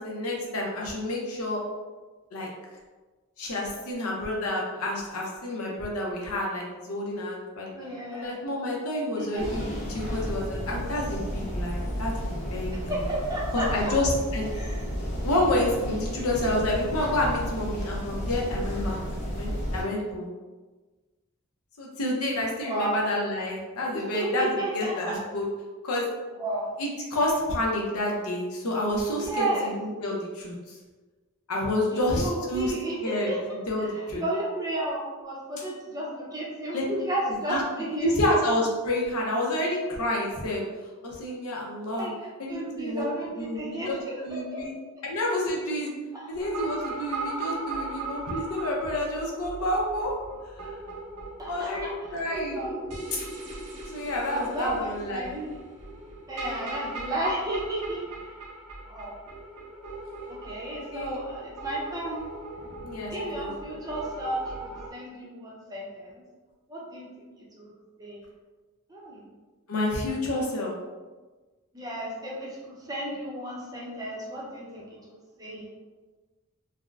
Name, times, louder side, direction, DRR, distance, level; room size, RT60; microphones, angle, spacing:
voice 1, 0.0-1.6 2.3-2.5 3.4-7.7 8.1-9.6 9.9-12.7 13.5-14.5 15.2-19.0 19.2-20.3 21.8-25.5 25.8-26.1 26.3-26.4 26.8-30.8 31.5-32.7 33.0-33.3 33.7-34.2 36.7-36.8 37.5-37.6 37.9-40.7 41.0-42.1 42.4-43.1 43.4-43.9 44.2-44.7 45.0-45.9 46.3-50.1 50.6-50.7 51.5-52.6 53.1-53.2 53.9-55.3 60.7-61.2 62.8-63.5 69.7-70.7, left 1 dB, 75° left, -2 dB, 0.7 m, -29 dB
voice 2, 7.7-8.3 9.2-9.7 12.7-13.9 14.5-14.8 22.6-23.1 23.9-25.2 26.3-26.7 29.1-29.8 31.9-33.4 33.8-38.1 42.0-42.1 42.5-44.6 46.1-46.2 51.4-52.2 52.5-52.8 54.2-55.5 56.3-58.0 58.8-59.1 60.3-62.3 63.1-66.2 66.7-67.7 68.0-68.2 68.9-69.2 71.7-75.7, right 1 dB, 15° right, -5 dB, 0.6 m, -33 dB
sound 1, 9.4-19.8, equal, 35° left, 1.0 m, -32 dB
sound 2, 46.4-64.9, right 2 dB, 90° right, 0.7 m, -39 dB
3.6 x 2.1 x 2.3 m, 1.3 s
head